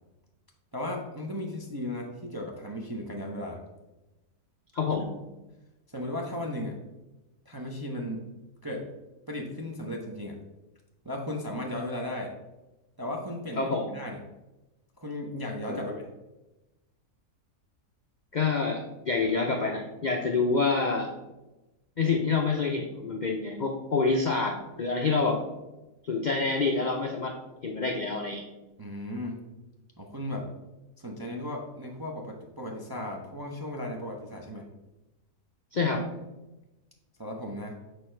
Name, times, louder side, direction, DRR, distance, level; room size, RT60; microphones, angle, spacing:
voice 1, 0.7-3.6 5.9-6.8 7.4-8.3 8.6-8.9 9.3-10.4 11.0-12.3 13.0-14.2 15.0-16.1 28.8-29.4 30.0-30.5 31.0-34.6 37.2-37.7, left 1 dB, 25° right, -1 dB, 0.5 m, -36 dB
voice 2, 4.7-5.1 13.6-13.9 15.7-16.0 18.3-21.1 22.0-25.4 26.0-27.4 27.6-28.4 35.7-36.0, left 4 dB, 65° left, 1 dB, 0.4 m, -27 dB
6.7 x 4.5 x 4.4 m, 1.0 s
omnidirectional pair, 1.7 m